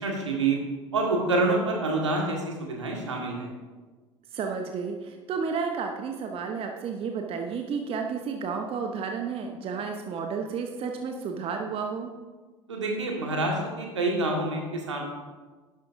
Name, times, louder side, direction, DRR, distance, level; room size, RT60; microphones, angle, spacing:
voice 1, 0.0-0.6 0.9-3.5 12.7-15.0, right 2 dB, 80° right, 0 dB, 1.7 m, -27 dB
voice 2, 4.3-12.1, right 5 dB, 40° right, 4 dB, 0.9 m, -32 dB
11.0 x 11.0 x 2.6 m, 1.3 s
figure-of-eight pair, 65°, 15 cm